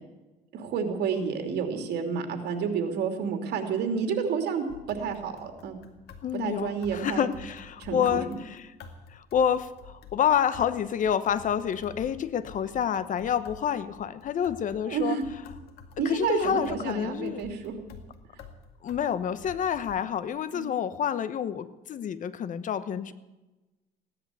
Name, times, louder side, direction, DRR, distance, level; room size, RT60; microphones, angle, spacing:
voice 1, 0.5-5.8 6.3-7.3 7.8-8.4 14.9-15.2 16.0-17.8 20.5-20.7, right 6 dB, 75° right, 5 dB, 2.8 m, -30 dB
sound 1, 4.7-20.0, left 5 dB, 70° left, 2.0 m, -49 dB
voice 2, 6.2-8.7 9.1-15.2 16.0-17.4 18.8-23.1, left 8 dB, 50° left, 13 dB, 1.0 m, -28 dB
16.5 x 11.0 x 8.1 m, 1.1 s
cardioid pair, 110°, 17 cm